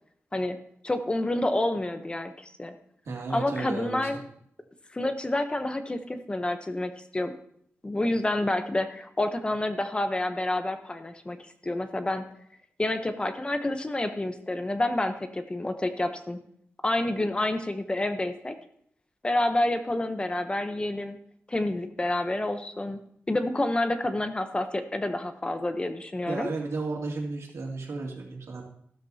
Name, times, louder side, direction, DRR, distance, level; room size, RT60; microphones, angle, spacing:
voice 1, 0.8-2.8 3.3-4.2 4.9-7.3 7.8-12.2 12.8-16.4 16.8-18.6 19.2-21.2 21.5-23.0 23.3-26.5, left 1 dB, 20° left, 8 dB, 0.8 m, -28 dB
voice 2, 3.0-4.1 26.3-28.6, right 3 dB, 85° right, -1 dB, 2.5 m, -33 dB
14.0 x 12.5 x 2.8 m, 0.69 s
wide cardioid pair, 135°, 5 cm